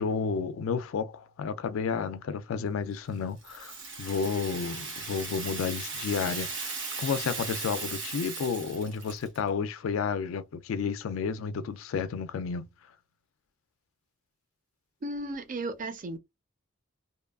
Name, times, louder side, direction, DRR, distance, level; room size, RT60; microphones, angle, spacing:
voice 1, 0.0-12.7, left 6 dB, 80° left, 0.3 m, -31 dB
Rattle (instrument), 3.4-9.4, right 4 dB, 65° right, 1.1 m, -37 dB
voice 2, 15.0-16.2, right 2 dB, 40° right, 0.5 m, -35 dB
2.8 x 2.3 x 2.2 m
head